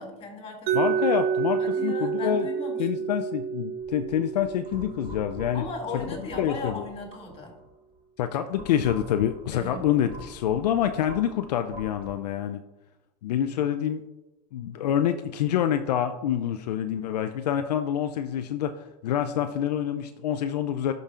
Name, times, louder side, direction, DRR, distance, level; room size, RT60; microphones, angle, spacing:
voice 1, 0.0-0.9 1.6-3.1 5.5-7.5 9.5-9.8, left 3 dB, 30° left, 2 dB, 2.5 m, -37 dB
voice 2, 0.7-2.5 2.8-5.7 6.4-6.8 8.2-12.6 13.2-14.0 14.5-20.9, left 10 dB, 80° left, 8 dB, 0.5 m, -27 dB
Mallet percussion, 0.7-6.5, right 7 dB, 50° right, 0.5 m, -30 dB
sound 1, 3.8-7.7 8.2-12.1, right 1 dB, 25° right, 1.5 m, -45 dB
11.5 x 5.2 x 2.4 m, 1.0 s
hypercardioid pair, 100°, 21 cm